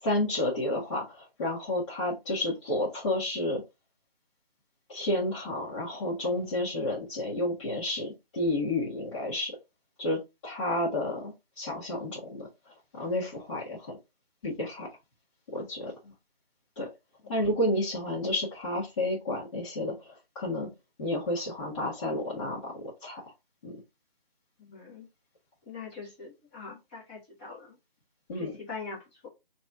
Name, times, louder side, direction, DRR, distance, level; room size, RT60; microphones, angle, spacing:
voice 1, 0.0-3.6 4.9-9.5 10.0-12.5 12.9-13.9 14.4-14.9 15.5-16.1 16.7-16.9 17.3-20.7 21.0-23.2 23.6-23.7 28.3-28.5, left 1 dB, 30° left, -9 dB, 1.8 m, -31 dB
voice 2, 24.6-25.1 25.7-27.8 28.3-29.0, left 4 dB, 10° left, -4 dB, 1.0 m, -42 dB
4.0 x 3.0 x 3.6 m, 0.23 s
figure-of-eight pair, 160°, 30 cm